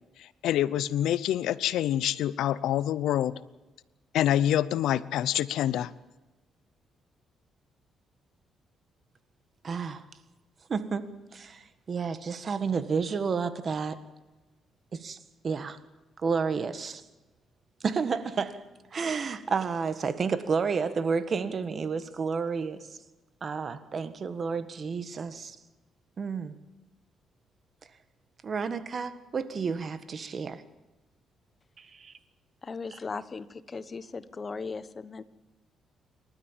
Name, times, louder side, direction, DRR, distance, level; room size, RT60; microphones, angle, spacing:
voice 1, 0.2-3.3 4.1-5.9, left 11 dB, 80° left, 18 dB, 0.7 m, -26 dB
voice 2, 9.6-10.0 10.7-11.0 11.3-14.0 14.9-15.2 15.4-15.8 16.2-17.0 17.8-18.6 18.9-22.9 23.4-25.6 26.2-26.5 28.4-30.6 31.8-32.1, right 5 dB, 45° right, 12 dB, 1.5 m, -31 dB
voice 3, 32.6-35.2, left 4 dB, 35° left, 15 dB, 1.1 m, -38 dB
28.5 x 13.0 x 7.4 m, 1.2 s
cardioid pair, 90°, 0 cm